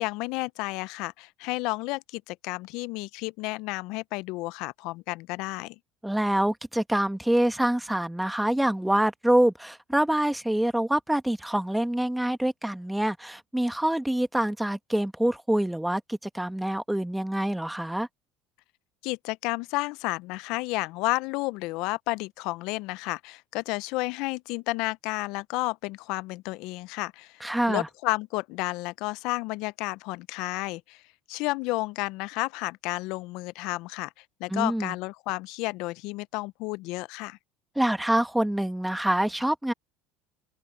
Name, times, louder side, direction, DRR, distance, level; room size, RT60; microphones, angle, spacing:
voice 1, 0.0-5.8 19.0-31.0 31.3-34.1 34.4-37.4, left 22 dB, 70° left, 0.5 m, -31 dB
voice 2, 6.0-18.1 27.4-27.9 34.5-34.9 37.8-39.7, right 1 dB, 5° right, 1.7 m, -26 dB
open air
supercardioid pair, 90°, 0 cm